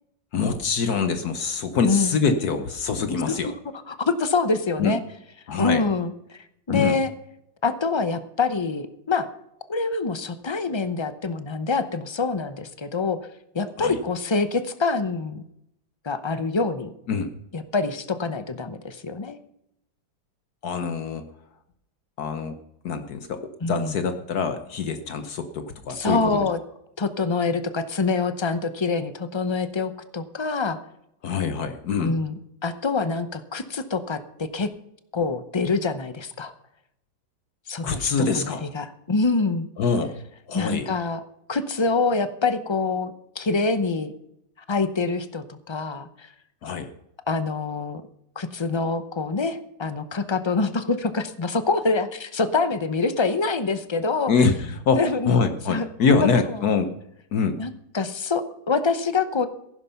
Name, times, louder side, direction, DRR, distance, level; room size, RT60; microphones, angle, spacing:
voice 1, 0.3-3.5 4.8-4.9 5.5-5.8 6.7-7.0 13.8-14.0 17.1-17.3 20.6-21.2 22.2-22.6 22.8-26.5 31.2-32.2 37.8-38.6 39.8-40.1 40.5-40.9 46.6-46.9 54.3-56.9 57.3-57.6, left 5 dB, 65° left, 9 dB, 1.4 m, -24 dB
voice 2, 3.9-5.0 5.6-7.1 7.6-9.3 9.7-13.2 13.5-15.4 16.0-16.9 17.5-19.4 23.6-24.0 25.9-26.6 27.0-30.8 32.0-32.3 32.6-34.7 35.1-36.5 37.7-39.7 40.5-41.2 41.5-44.1 44.7-46.3 47.3-48.0 48.4-54.3 55.0-55.3 55.7-55.9 56.2-56.7 57.6-59.5, left 4 dB, 40° left, 11 dB, 0.4 m, -25 dB
15.0 x 11.0 x 5.7 m, 0.79 s
omnidirectional pair, 1.9 m